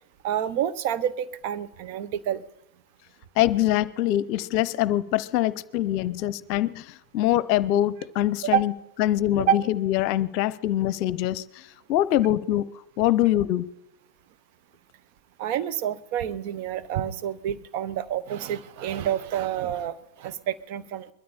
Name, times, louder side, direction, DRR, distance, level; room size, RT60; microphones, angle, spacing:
voice 1, 0.2-2.4 8.5-8.6 9.5-9.6 15.4-21.1, right 10 dB, 55° right, 12 dB, 1.0 m, -28 dB
voice 2, 3.4-8.7 9.0-12.6 13.0-13.7, left 13 dB, 50° left, 18 dB, 0.7 m, -24 dB
21.5 x 13.0 x 4.3 m, 0.80 s
hypercardioid pair, 90°, 0 cm